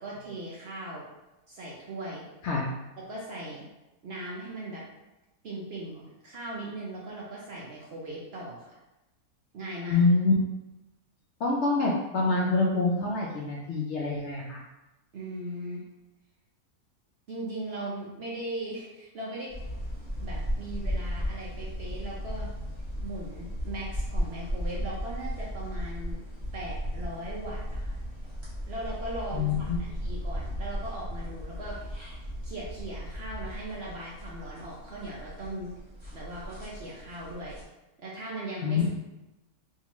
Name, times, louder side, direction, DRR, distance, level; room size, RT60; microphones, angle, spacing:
voice 1, 0.0-1.0 1.5-2.2 3.1-3.6 4.0-4.8 5.4-8.7 9.5-10.0 15.1-15.8 17.3-19.5 20.2-22.5 23.0-26.2 26.5-28.0 28.7-31.8 32.4-35.7 36.1-37.6 38.0-38.8, right 1 dB, 60° right, -4 dB, 0.7 m, -39 dB
voice 2, 9.9-10.3 11.4-14.6 29.3-29.8 38.6-38.8, left 3 dB, 65° left, -3 dB, 0.7 m, -26 dB
sound 1, 19.5-37.6, equal, 20° right, 1.0 m, -36 dB
3.7 x 2.4 x 2.9 m, 1.0 s
omnidirectional pair, 1.6 m